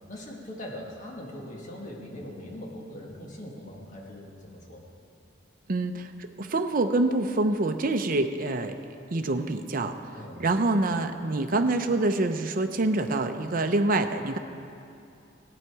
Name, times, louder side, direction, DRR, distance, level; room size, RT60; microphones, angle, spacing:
voice 1, 0.1-4.8 10.1-10.4, left 1 dB, 40° left, -2 dB, 1.7 m, -41 dB
voice 2, 5.7-6.1 6.4-8.7 9.1-10.0 10.4-14.4, right 2 dB, 45° right, 7 dB, 0.6 m, -26 dB
15.5 x 8.8 x 4.7 m, 2.6 s
head